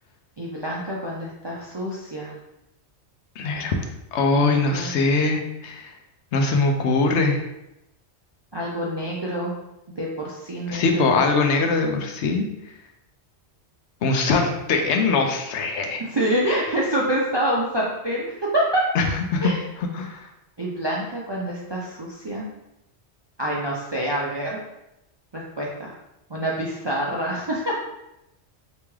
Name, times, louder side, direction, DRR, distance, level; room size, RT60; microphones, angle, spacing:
voice 1, 0.4-2.3 4.3-4.9 8.5-9.5 10.0-11.2 16.0-18.8 19.4-19.6 20.6-22.5 23.4-24.6 25.3-25.9 26.3-27.9, right 1 dB, 45° right, -4 dB, 0.3 m, -26 dB
voice 2, 3.4-3.7 4.1-5.9 6.3-7.4 10.7-12.5 14.0-16.0 18.9-19.5 19.8-20.2, left 3 dB, 80° left, 4 dB, 0.9 m, -22 dB
3.5 x 2.9 x 3.2 m, 0.89 s
omnidirectional pair, 1.2 m